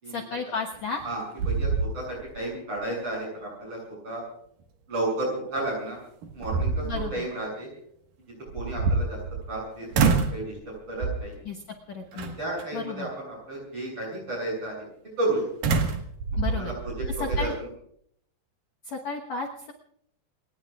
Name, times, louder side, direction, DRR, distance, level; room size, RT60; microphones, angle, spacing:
voice 1, 0.1-1.0 6.8-7.3 11.5-11.6 11.9-12.4 12.7-13.1 16.4-16.7 17.2-17.5 18.9-19.7, left 4 dB, 60° left, 0 dB, 1.9 m, -33 dB
sound 1, 0.7-1.1 1.4-2.4 2.8-2.9 5.6-5.7 6.2-7.1 8.5-9.6 9.9-10.4 11.0-11.4 12.2-12.6 15.6-17.5, right 4 dB, 60° right, 3.0 m, -26 dB
voice 2, 1.0-4.2 4.9-6.0 6.3-7.7 8.5-9.2 9.5-10.6 10.9-11.4 12.1-14.9 15.2-15.4 16.5-17.5, right 2 dB, 30° right, -3 dB, 7.9 m, -32 dB
29.5 x 19.5 x 2.5 m, 0.68 s
omnidirectional pair, 4.8 m